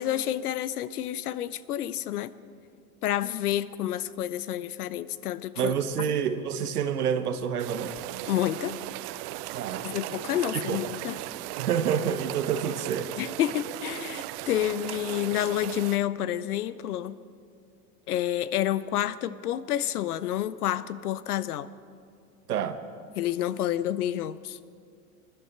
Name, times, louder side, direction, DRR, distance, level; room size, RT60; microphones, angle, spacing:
voice 1, 0.0-2.3 3.0-5.8 8.3-8.8 9.8-11.2 13.2-17.2 18.1-21.8 23.2-24.6, left 12 dB, 90° left, 17 dB, 0.6 m, -29 dB
voice 2, 5.6-8.0 9.5-9.9 10.5-10.8 11.6-13.1 22.5-22.8, right 8 dB, 90° right, 11 dB, 1.0 m, -28 dB
sound 1, 7.6-16.0, right 18 dB, 50° right, 0.5 m, -37 dB
21.0 x 11.5 x 4.4 m, 2.3 s
hypercardioid pair, 95°, 44 cm